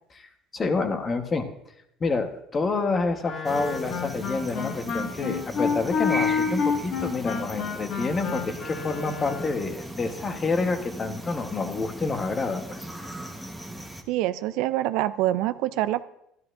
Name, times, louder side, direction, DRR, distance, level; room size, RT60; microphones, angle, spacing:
voice 1, 0.2-1.5 2.0-12.9, left 3 dB, 30° left, 7 dB, 1.2 m, -28 dB
Wind instrument woodwind instrument, 3.2-9.6, left 6 dB, 60° left, 1.8 m, -29 dB
sound 1, 3.4-14.0, right 1 dB, ahead, 1.2 m, -38 dB
voice 2, 14.1-16.0, right 15 dB, 70° right, 14 dB, 0.4 m, -25 dB
12.5 x 12.0 x 2.6 m, 0.80 s
supercardioid pair, 100°, 0 cm